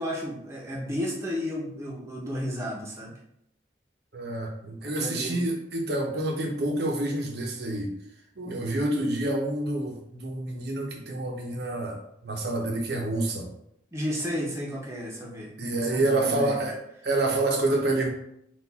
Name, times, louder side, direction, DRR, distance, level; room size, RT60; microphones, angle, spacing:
voice 1, 0.0-3.1 4.8-5.4 13.9-16.6, equal, 15° right, -4 dB, 0.9 m, -33 dB
voice 2, 4.1-7.9 8.4-13.5 15.6-16.8 17.0-18.1, right 2 dB, 60° right, 1 dB, 0.9 m, -28 dB
4.5 x 2.6 x 4.0 m, 0.76 s
head